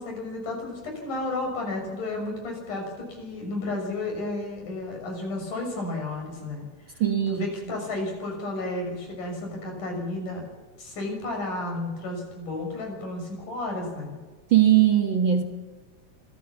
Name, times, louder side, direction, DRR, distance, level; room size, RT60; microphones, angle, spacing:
voice 1, 0.0-7.0 7.3-10.5 10.8-14.2, left 2 dB, 80° left, 2 dB, 7.7 m, -32 dB
voice 2, 7.0-7.4 14.5-15.4, right 11 dB, 50° right, 4 dB, 1.8 m, -20 dB
26.0 x 16.5 x 7.2 m, 1.3 s
omnidirectional pair, 3.6 m